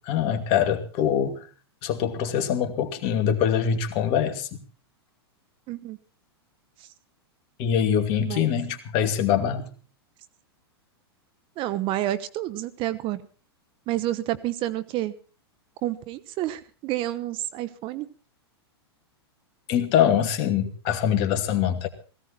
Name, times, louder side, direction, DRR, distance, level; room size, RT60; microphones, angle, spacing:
voice 1, 0.0-1.4 1.8-4.6 7.6-9.7 19.7-21.9, left 9 dB, 45° left, 7 dB, 2.4 m, -24 dB
voice 2, 5.7-6.0 8.2-8.5 11.6-13.2 13.9-15.1 15.8-18.1, right 14 dB, 40° right, 15 dB, 1.1 m, -29 dB
17.5 x 16.5 x 4.3 m, 0.37 s
hypercardioid pair, 110°, 13 cm